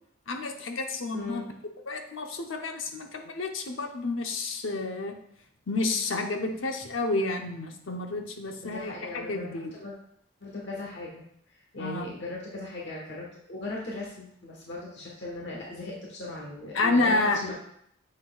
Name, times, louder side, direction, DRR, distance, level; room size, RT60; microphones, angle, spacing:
voice 1, 0.3-1.4 1.9-5.2 5.7-9.7 11.8-12.1 16.7-17.5, left 3 dB, 80° left, 4 dB, 0.8 m, -30 dB
voice 2, 1.1-1.5 8.6-10.0 10.4-11.2 11.5-17.5, left 2 dB, 60° left, -3 dB, 1.4 m, -38 dB
7.4 x 6.1 x 2.4 m, 0.71 s
head